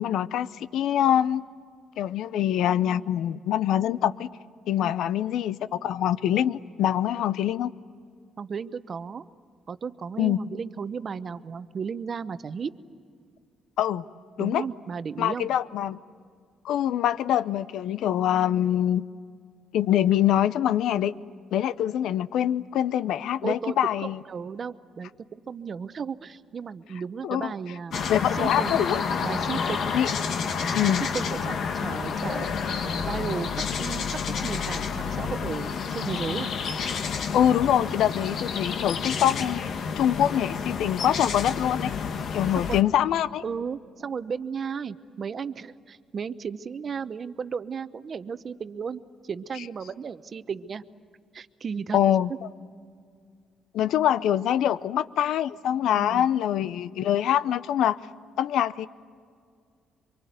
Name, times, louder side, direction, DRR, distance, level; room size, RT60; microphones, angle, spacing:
voice 1, 0.0-1.4 2.0-4.3 4.7-7.7 10.2-10.4 13.8-14.0 14.4-14.6 15.2-16.0 16.6-19.1 19.7-21.1 21.5-24.2 27.2-27.5 28.1-29.0 29.9-30.1 30.7-31.0 37.3-39.6 40.0-41.9 42.3-43.4 51.9-52.3 53.7-58.0 58.4-58.9, left 11 dB, 80° left, 17 dB, 0.6 m, -24 dB
voice 2, 8.4-9.2 9.7-12.7 14.4-15.5 23.4-28.9 29.2-30.1 30.8-34.1 34.4-36.5 42.5-42.8 43.4-50.8 51.3-52.0 52.3-52.4 55.9-56.3, right 6 dB, 45° right, 13 dB, 0.8 m, -34 dB
sound 1, 27.9-42.8, left 6 dB, 65° left, 1.3 m, -29 dB
25.0 x 24.0 x 9.4 m, 2.1 s
cardioid pair, 90°, 0 cm